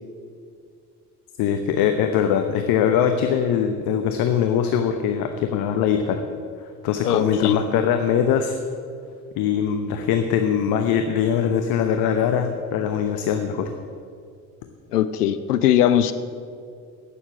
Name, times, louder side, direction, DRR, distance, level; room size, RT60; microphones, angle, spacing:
voice 1, 1.4-6.2 6.8-8.6 9.4-13.7, left 8 dB, 50° left, 6 dB, 0.9 m, -22 dB
voice 2, 7.0-7.6 14.9-16.1, left 11 dB, 80° left, 11 dB, 0.7 m, -20 dB
17.0 x 7.1 x 6.0 m, 2.3 s
figure-of-eight pair, 55°, 46 cm